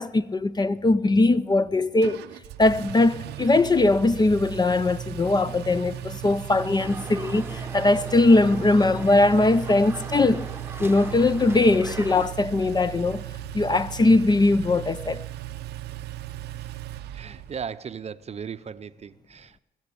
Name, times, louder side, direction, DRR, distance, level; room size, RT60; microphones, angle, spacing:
voice 1, 0.0-2.2 2.6-10.5 10.8-13.2 13.5-15.2, left 2 dB, 25° left, 0.5 m, -20 dB
Engine, 2.0-17.7, right 12 dB, 90° right, 0.6 m, -37 dB
sound 1, 6.8-12.3, right 2 dB, 15° right, 0.9 m, -40 dB
voice 2, 17.1-19.6, right 7 dB, 40° right, 0.6 m, -37 dB
20.0 x 7.9 x 8.4 m
cardioid pair, 80°, 17 cm